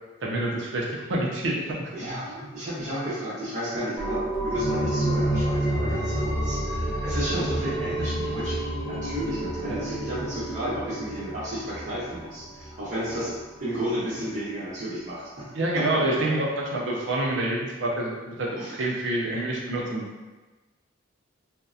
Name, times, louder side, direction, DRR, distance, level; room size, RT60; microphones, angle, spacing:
voice 1, 0.2-1.9 9.7-9.8 15.5-20.0, right 1 dB, 60° right, -2 dB, 0.5 m, -27 dB
voice 2, 1.9-15.5 15.7-16.3 18.6-18.8, right 1 dB, 40° right, -10 dB, 0.8 m, -32 dB
sound 1, 4.0-13.3 13.7-13.8, right 1 dB, 25° left, 0.6 m, -29 dB
2.7 x 2.0 x 2.3 m, 1.2 s
head